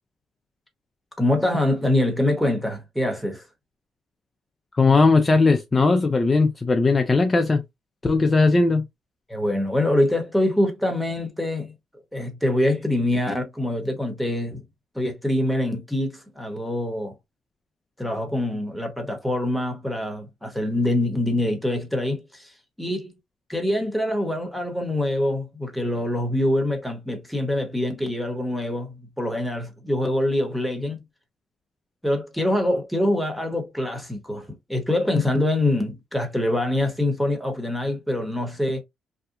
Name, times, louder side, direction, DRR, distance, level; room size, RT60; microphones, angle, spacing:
voice 1, 1.2-3.4 9.3-11.7 12.1-14.6 14.9-17.1 18.0-22.5 22.8-23.1 23.5-31.0 32.0-38.8, left 1 dB, ahead, 1.0 m, -24 dB
voice 2, 4.7-7.6 8.0-8.8, left 3 dB, 30° left, 0.4 m, -18 dB
2.8 x 2.2 x 2.5 m
cardioid pair, 90°, 0 cm